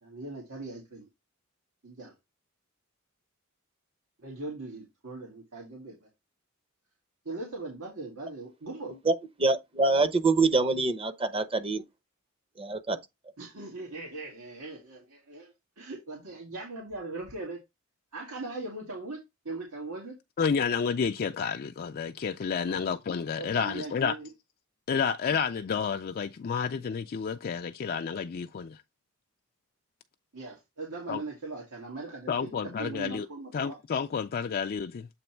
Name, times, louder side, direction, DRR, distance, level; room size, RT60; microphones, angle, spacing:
voice 1, 0.0-1.1 1.8-2.1 4.2-6.1 7.3-9.0 13.4-17.6 18.1-20.2 22.7-22.9 23.4-24.3 30.3-32.5 32.8-33.8, right 2 dB, 80° right, 2.0 m, -40 dB
voice 2, 9.4-11.8 12.6-13.0, right 3 dB, 25° right, 0.8 m, -25 dB
voice 3, 20.4-24.1 24.9-28.8 31.1-31.2 32.3-33.3 33.5-35.1, left 6 dB, 45° left, 0.4 m, -30 dB
7.9 x 3.0 x 4.4 m
head